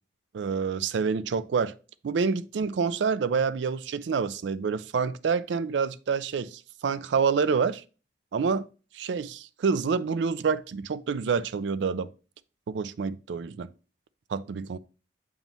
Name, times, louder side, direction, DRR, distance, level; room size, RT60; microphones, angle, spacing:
voice 1, 0.3-1.7 2.0-7.8 8.3-8.6 8.9-12.1 12.7-13.7 14.3-14.8, right 5 dB, 75° right, 0.4 m, -27 dB
7.2 x 3.0 x 5.2 m
head